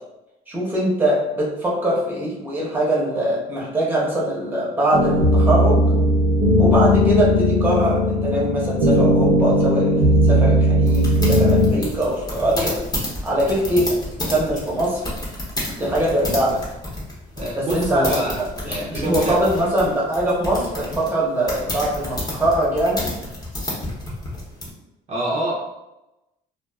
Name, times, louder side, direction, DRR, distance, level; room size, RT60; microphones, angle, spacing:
voice 1, 0.5-5.8 6.6-12.8 13.2-15.0 15.8-16.6 17.6-23.0, right 1 dB, 10° right, -4 dB, 0.8 m, -22 dB
sound 1, 4.9-11.7, equal, 80° right, 0.7 m, -17 dB
sound 2, 10.9-24.7, left 1 dB, 25° left, 0.8 m, -30 dB
voice 2, 17.4-18.4 18.7-19.4 25.1-25.5, right 1 dB, 40° right, -5 dB, 0.5 m, -25 dB
2.4 x 2.3 x 2.2 m, 0.95 s
cardioid pair, 110°, 17 cm